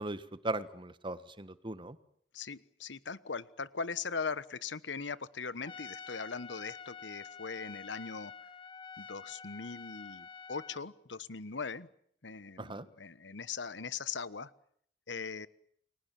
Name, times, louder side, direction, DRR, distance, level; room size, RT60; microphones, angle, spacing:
voice 1, 0.0-2.0 12.6-12.9, right 2 dB, 30° right, 14 dB, 1.4 m, -38 dB
voice 2, 2.3-8.3 9.0-11.9 12.2-14.5 15.1-15.5, left 5 dB, 85° left, 16 dB, 1.2 m, -40 dB
Trumpet, 5.6-10.9, left 6 dB, 30° left, 1.5 m, -48 dB
30.0 x 22.5 x 7.6 m, 0.66 s
head